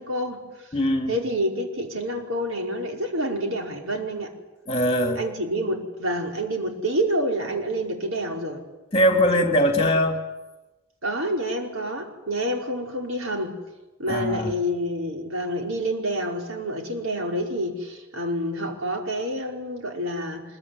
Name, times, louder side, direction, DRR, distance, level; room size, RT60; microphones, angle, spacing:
voice 1, 0.0-0.8 1.1-4.3 5.2-8.6 11.0-13.6 14.0-20.4, equal, 75° right, 2 dB, 5.2 m, -28 dB
voice 2, 0.7-1.1 4.7-5.2 8.9-10.2 14.1-14.5, equal, 25° left, 4 dB, 3.4 m, -21 dB
26.0 x 22.5 x 9.7 m, 1.1 s
head